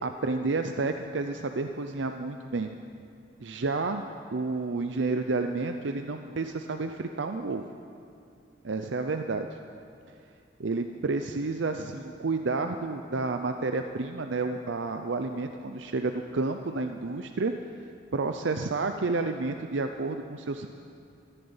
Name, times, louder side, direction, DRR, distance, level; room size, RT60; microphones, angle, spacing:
voice 1, 0.0-2.7 3.4-7.7 8.6-9.6 10.6-17.5 18.1-20.7, right 3 dB, 80° right, 6 dB, 0.6 m, -30 dB
14.5 x 10.0 x 8.8 m, 2.5 s
head